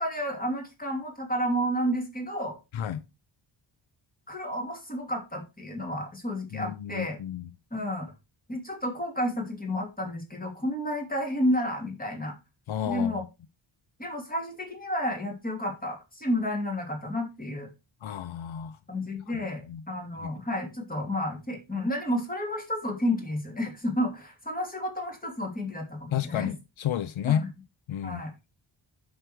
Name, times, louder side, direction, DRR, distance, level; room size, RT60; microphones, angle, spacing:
voice 1, 0.0-2.6 4.3-7.2 7.7-8.1 8.5-12.3 12.9-13.2 14.0-17.7 18.9-26.5 27.3-27.5 28.0-28.3, equal, 20° left, 2.7 m, -31 dB
voice 2, 6.5-7.5 12.7-13.2 18.0-18.8 19.3-19.4 19.7-19.8 20.2-20.3 26.1-27.5 27.9-28.2, left 10 dB, 75° left, 0.7 m, -31 dB
7.8 x 6.5 x 4.5 m
wide cardioid pair, 155°, 48 cm